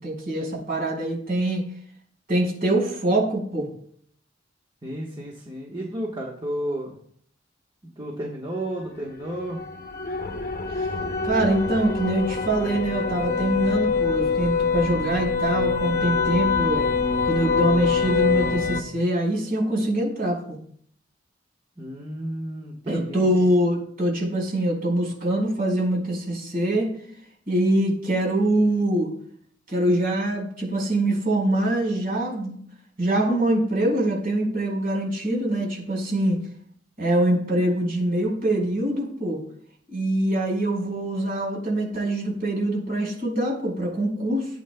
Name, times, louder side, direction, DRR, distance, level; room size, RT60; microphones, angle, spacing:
voice 1, 0.0-1.6 2.3-3.7 10.8-10.9 11.2-16.9 17.3-20.6 22.9-26.9 27.5-29.1 29.7-32.6 33.0-36.4 37.0-39.4 39.9-44.5, right 1 dB, 50° right, -2 dB, 4.8 m, -24 dB
voice 2, 4.8-7.0 8.0-9.6 21.8-23.5, right 1 dB, 25° right, -3 dB, 1.3 m, -32 dB
sound 1, 9.0-18.8, left 5 dB, 50° left, 0.8 m, -25 dB
16.5 x 8.2 x 2.3 m, 0.63 s
head